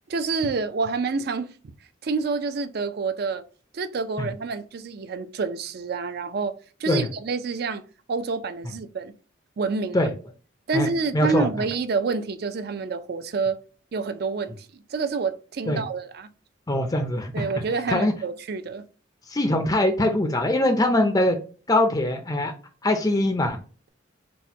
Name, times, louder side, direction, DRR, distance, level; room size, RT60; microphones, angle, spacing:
voice 1, 0.1-1.7 2.0-3.4 3.7-7.8 8.1-9.1 9.6-10.1 10.7-13.6 13.9-14.7 14.9-16.3 17.3-18.8, right 4 dB, 50° right, 0.4 m, -28 dB
voice 2, 11.1-11.5 15.7-15.8 16.7-17.5 17.9-18.1 19.3-21.4 21.7-22.5 22.8-23.6, left 1 dB, 20° left, 0.4 m, -22 dB
4.1 x 2.1 x 4.4 m
head